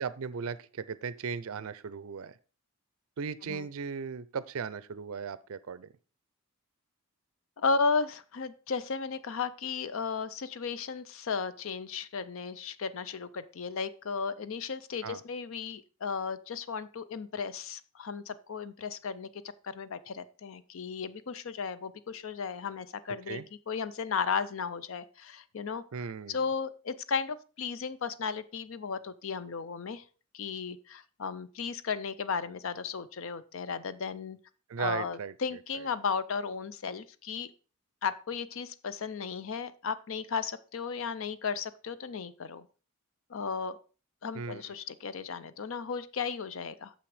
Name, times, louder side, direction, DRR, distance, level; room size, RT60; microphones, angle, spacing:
voice 1, 0.0-2.3 3.2-5.9 15.0-15.2 23.3-23.4 25.9-26.4 34.7-35.3 44.3-44.6, right 6 dB, 70° right, 16 dB, 0.5 m, -37 dB
voice 2, 7.6-19.3 19.6-25.8 26.3-30.0 30.3-34.4 34.8-37.5 38.0-42.7 43.3-43.8 44.2-46.9, left 5 dB, 65° left, 15 dB, 0.5 m, -35 dB
7.0 x 5.9 x 4.8 m, 0.37 s
head